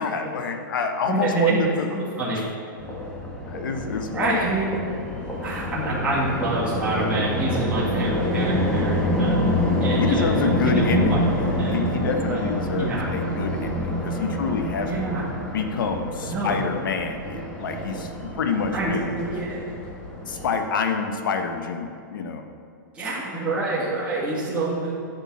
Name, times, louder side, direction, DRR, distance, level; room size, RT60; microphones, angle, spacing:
voice 1, 0.0-1.9 2.3-2.4 3.4-4.4 10.0-15.0 15.5-19.1 20.2-22.5, left 5 dB, 75° left, 6 dB, 1.3 m, -27 dB
voice 2, 1.1-1.6 1.9-2.5 4.1-4.7 5.4-11.2 11.6-11.7 12.3-12.4 12.8-13.1 14.8-15.3 16.3-16.6 18.7-19.6 22.9-24.9, right 2 dB, 10° right, -10 dB, 2.3 m, -27 dB
sound 1, 2.8-20.5, equal, 10° left, 1.9 m, -27 dB
11.0 x 6.6 x 6.3 m, 2.4 s
hypercardioid pair, 140°, 11 cm